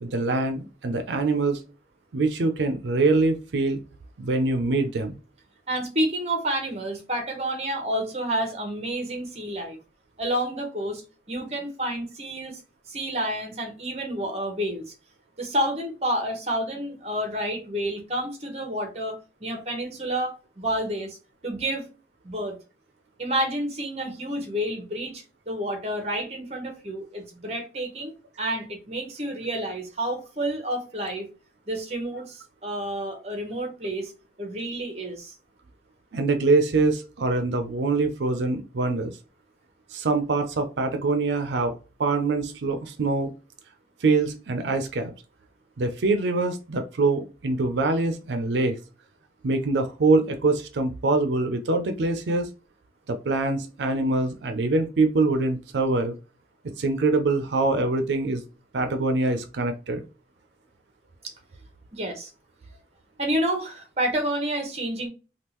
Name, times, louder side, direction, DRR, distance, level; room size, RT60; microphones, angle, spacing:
voice 1, 0.0-1.6 2.1-3.8 4.2-5.2 36.1-39.2 39.9-41.7 42.0-43.3 44.0-45.1 45.8-48.8 49.4-52.5 53.1-56.1 56.8-58.4 58.7-60.0, right 3 dB, 90° right, 0.5 m, -24 dB
voice 2, 5.7-9.8 10.2-11.0 11.3-12.6 12.9-14.8 15.4-21.2 21.4-21.9 22.2-22.6 23.2-31.3 31.7-34.1 34.4-35.3 61.2-61.3 61.9-62.3 63.2-65.1, right 1 dB, 35° right, 0.9 m, -29 dB
3.5 x 2.3 x 2.9 m
head